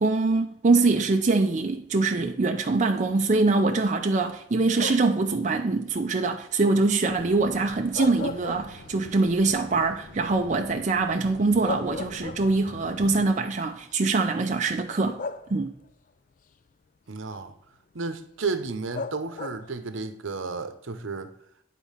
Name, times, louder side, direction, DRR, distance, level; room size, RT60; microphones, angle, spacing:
voice 1, 0.0-15.2 15.5-15.7, right 3 dB, 35° right, 0.5 m, -23 dB
sound 1, 4.7-5.3 7.7-9.1 9.5-9.6 11.2-11.3 11.6-12.8 13.8-13.9 15.2-15.9 18.9-19.8, left 4 dB, 40° left, 0.3 m, -36 dB
sound 2, 7.1-13.3, left 2 dB, 90° left, 1.1 m, -46 dB
voice 2, 17.1-17.5 17.9-21.3, right 4 dB, 75° right, 0.8 m, -32 dB
9.2 x 4.0 x 5.6 m
head